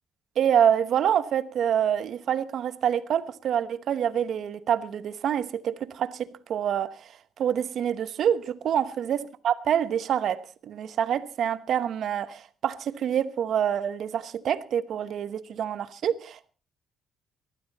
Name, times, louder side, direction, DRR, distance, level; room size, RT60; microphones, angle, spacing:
voice 1, 0.4-7.1 7.4-16.5, right 9 dB, 65° right, 1.1 m, -26 dB
19.5 x 14.0 x 4.1 m
cardioid pair, 90°, 0 cm